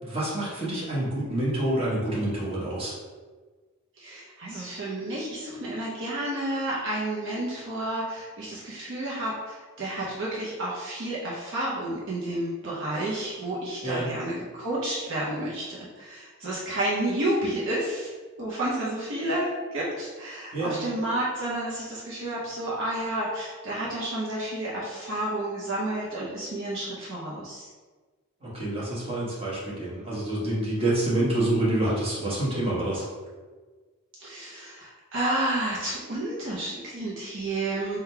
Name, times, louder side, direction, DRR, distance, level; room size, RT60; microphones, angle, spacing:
voice 1, 0.0-3.0 13.8-14.1 20.5-20.8 28.4-33.0, right 1 dB, 25° right, -7 dB, 1.3 m, -27 dB
voice 2, 4.0-18.1 18.4-27.7 34.2-38.0, right 1 dB, 60° right, -6 dB, 0.7 m, -31 dB
3.7 x 2.3 x 4.4 m, 1.4 s
head